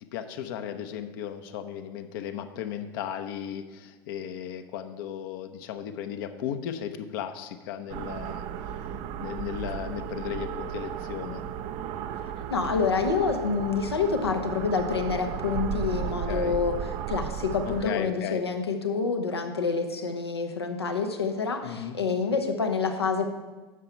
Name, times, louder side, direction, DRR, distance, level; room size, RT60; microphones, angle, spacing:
voice 1, 0.1-8.4 9.2-11.4 16.0-16.6 17.7-18.4 21.6-22.0, left 9 dB, 60° left, 8 dB, 0.9 m, -35 dB
sound 1, 7.9-17.8, right 9 dB, 50° right, 0.6 m, -34 dB
voice 2, 12.5-16.8 17.1-23.3, left 5 dB, 90° left, 4 dB, 1.1 m, -27 dB
9.8 x 6.9 x 4.5 m, 1.2 s
hypercardioid pair, 85°, 13 cm